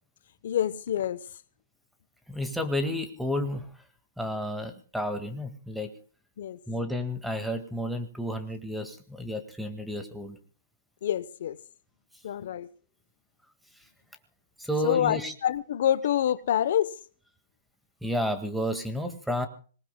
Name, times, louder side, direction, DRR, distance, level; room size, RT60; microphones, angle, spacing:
voice 1, 0.4-1.2 6.4-6.6 11.0-11.6 12.2-12.7 14.8-17.0, left 10 dB, 65° left, 0.8 m, -27 dB
voice 2, 2.3-3.7 4.2-5.9 6.7-10.4 14.6-15.3 18.0-19.5, left 1 dB, ahead, 1.8 m, -31 dB
26.0 x 19.0 x 2.2 m
hypercardioid pair, 145°, 0 cm